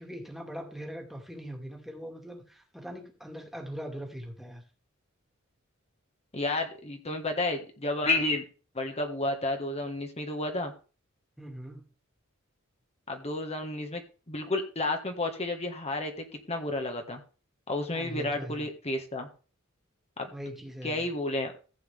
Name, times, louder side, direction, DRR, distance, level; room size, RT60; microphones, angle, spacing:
voice 1, 0.0-4.6 11.4-11.8 17.9-18.7 20.3-21.1, equal, ahead, 1 dB, 2.3 m, -41 dB
voice 2, 6.3-8.4 8.7-10.7 13.1-17.2 17.7-19.3 20.2-20.3 20.8-21.5, left 2 dB, 30° left, 5 dB, 1.7 m, -31 dB
15.0 x 8.6 x 3.6 m, 0.36 s
head